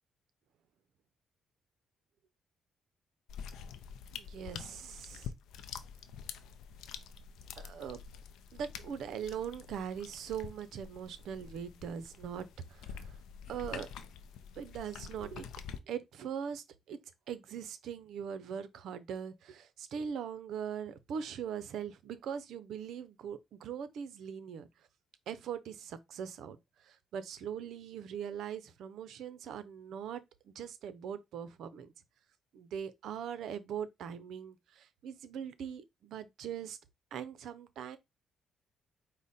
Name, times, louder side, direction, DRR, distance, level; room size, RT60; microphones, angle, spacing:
sound 1, 3.3-15.8, left 7 dB, 80° left, 0.5 m, -47 dB
voice 1, 4.1-5.3 7.6-8.0 8.5-13.2 13.5-13.9 14.6-15.5 15.9-17.0 17.3-24.7 25.3-26.6 26.9-31.9 32.5-36.8 37.1-38.0, right 8 dB, 75° right, 0.6 m, -41 dB
4.9 x 2.1 x 4.1 m
cardioid pair, 90°, 0 cm